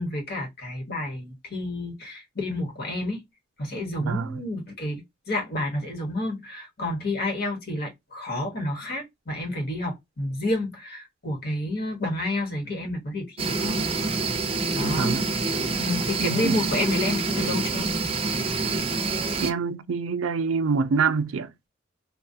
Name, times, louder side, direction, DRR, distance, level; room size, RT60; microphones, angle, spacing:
voice 1, 0.0-3.2 3.6-5.0 5.3-14.2 14.7-15.1 15.8-17.9, left 1 dB, 50° left, 1.3 m, -30 dB
voice 2, 4.0-4.4 14.8-15.2 16.2-16.6 19.4-21.5, right 5 dB, 80° right, 0.4 m, -26 dB
sound 1, 13.4-19.5, right 3 dB, 30° right, 0.6 m, -26 dB
3.7 x 2.3 x 2.7 m
head